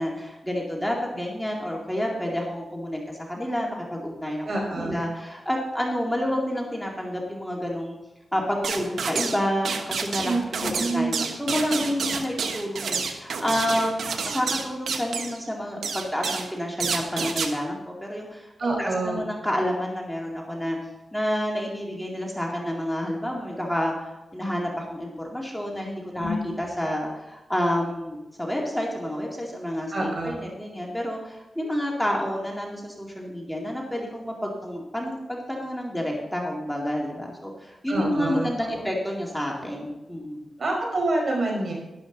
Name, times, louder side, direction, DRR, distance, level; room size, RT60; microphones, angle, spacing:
voice 1, 0.0-3.0 3.3-8.0 8.3-14.1 14.3-18.5 18.8-20.8 21.1-23.9 24.3-40.5, equal, 5° left, -2 dB, 2.3 m, -29 dB
voice 2, 4.4-5.0 10.2-11.2 18.6-19.2 26.2-26.4 29.9-30.5 37.9-38.5 38.7-38.9 40.6-41.7, right 2 dB, 55° right, 0 dB, 5.1 m, -27 dB
sound 1, 8.6-9.4 9.6-15.4 15.8-16.5 16.8-17.5, right 5 dB, 85° right, 1.2 m, -29 dB
12.0 x 11.5 x 3.9 m, 0.99 s
cardioid pair, 70°, 0 cm